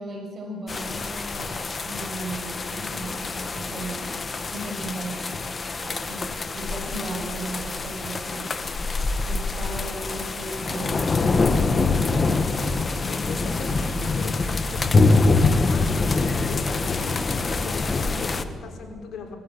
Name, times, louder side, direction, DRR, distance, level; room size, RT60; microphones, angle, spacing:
voice 1, 0.0-4.2 4.5-8.6 9.3-12.5, right 2 dB, 40° right, 1 dB, 6.7 m, -36 dB
sound 1, 0.7-18.4, left 3 dB, 35° left, 1.3 m, -25 dB
voice 2, 13.0-16.2 16.5-19.4, left 4 dB, 65° left, 2 dB, 4.4 m, -39 dB
21.5 x 15.5 x 8.4 m, 2.2 s
cardioid pair, 90°, 0 cm